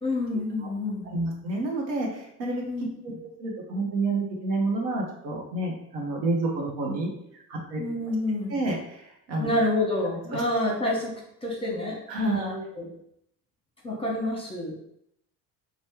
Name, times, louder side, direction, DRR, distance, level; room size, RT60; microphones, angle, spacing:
voice 1, 0.0-1.1 2.7-2.8 7.8-8.6 9.4-11.1 11.4-12.0 12.3-12.9 13.8-14.8, left 1 dB, 10° left, -3 dB, 1.0 m, -28 dB
voice 2, 1.1-2.6 3.0-3.1 3.4-7.8 8.5-9.5 10.3-10.4 12.1-12.6, right 2 dB, 75° right, -1 dB, 0.9 m, -29 dB
3.1 x 2.2 x 3.0 m, 0.76 s
figure-of-eight pair, 55°, 50 cm